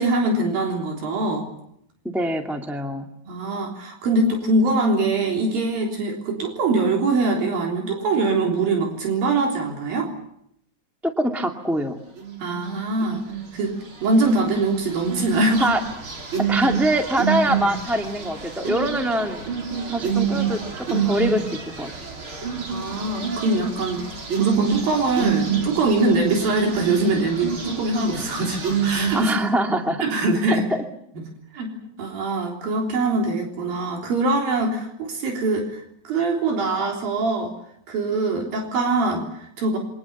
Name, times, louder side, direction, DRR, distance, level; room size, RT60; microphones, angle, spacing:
voice 1, 0.0-1.5 3.3-10.1 12.4-13.2 13.5-13.7 14.0-15.7 22.7-24.1 24.4-29.3 30.0-30.6 31.5-37.5 37.9-39.8, right 2 dB, 80° right, 1 dB, 5.4 m, -23 dB
voice 2, 2.0-3.1 11.0-12.0 15.6-15.8 16.4-19.4 19.9-21.9 29.1-30.0 30.5-30.6, right 1 dB, ahead, 4 dB, 1.2 m, -24 dB
sound 1, 12.2-12.6 13.0-13.5 14.1-29.2, right 7 dB, 35° right, 3.8 m, -27 dB
28.0 x 24.5 x 7.1 m, 0.75 s
omnidirectional pair, 4.0 m